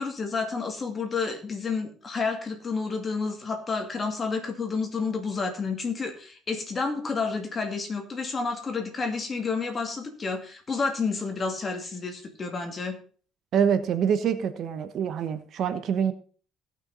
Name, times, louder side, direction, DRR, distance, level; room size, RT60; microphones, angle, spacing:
voice 1, 0.0-13.0, left 4 dB, 25° left, 4 dB, 2.3 m, -30 dB
voice 2, 13.5-16.1, right 7 dB, 55° right, 11 dB, 1.0 m, -25 dB
17.0 x 6.1 x 4.0 m, 0.42 s
cardioid pair, 145°, 0 cm